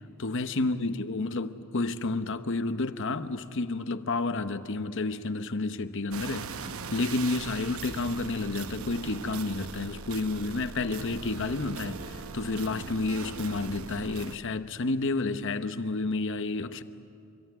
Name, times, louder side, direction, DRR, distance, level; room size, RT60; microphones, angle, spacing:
voice 1, 0.2-6.5 6.9-12.0 12.3-16.8, left 3 dB, 60° left, 0.9 m, -30 dB
sound 1, 6.1-14.4, right 4 dB, 75° right, 0.9 m, -40 dB
26.0 x 22.0 x 9.5 m
head